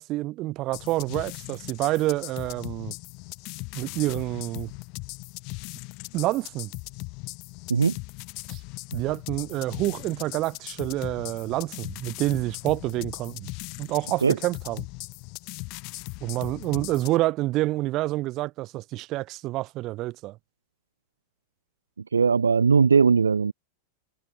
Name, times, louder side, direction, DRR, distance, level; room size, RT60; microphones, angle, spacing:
voice 1, 0.0-2.9 3.7-4.7 6.1-6.7 8.5-8.6 8.9-13.5 13.8-14.8 16.2-20.4, right 17 dB, 35° right, 1.6 m, -28 dB
sound 1, 0.7-17.2, left 30 dB, 45° left, 3.5 m, -39 dB
voice 2, 22.1-23.5, right 5 dB, 75° right, 0.6 m, -19 dB
figure-of-eight pair, 90°, 0 cm